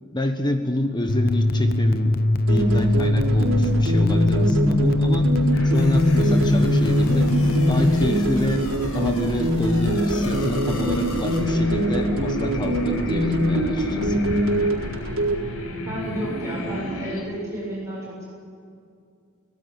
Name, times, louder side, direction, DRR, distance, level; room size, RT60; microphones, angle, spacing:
voice 1, 0.0-2.2 2.5-5.3 5.6-7.4 7.7-14.2, left 1 dB, 20° left, 6 dB, 1.3 m, -28 dB
sound 1, 1.1-7.9, left 1 dB, 45° left, 0.8 m, -20 dB
sound 2, 2.5-15.4, equal, 65° right, 4.2 m, -23 dB
sound 3, 5.5-17.2, left 1 dB, 85° left, 5.1 m, -32 dB
voice 2, 15.9-18.3, right 1 dB, 15° right, -6 dB, 7.4 m, -32 dB
25.5 x 17.5 x 8.4 m, 2.4 s
head